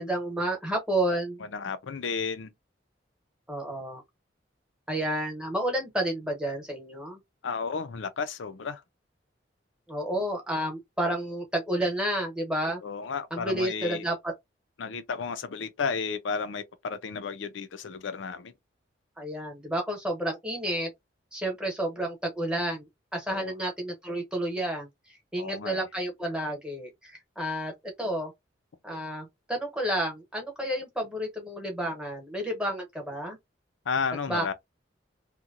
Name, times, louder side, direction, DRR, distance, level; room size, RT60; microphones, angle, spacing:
voice 1, 0.0-1.4 3.5-4.0 4.9-7.2 9.9-12.8 13.3-14.3 19.2-20.9 21.3-28.3 28.8-33.4 34.3-34.5, right 1 dB, 5° right, 0.9 m, -31 dB
voice 2, 1.5-2.5 7.4-8.8 12.8-14.0 14.8-18.5 23.3-23.5 25.4-25.9 33.9-34.5, left 5 dB, 85° left, 0.5 m, -33 dB
2.9 x 2.2 x 2.4 m
head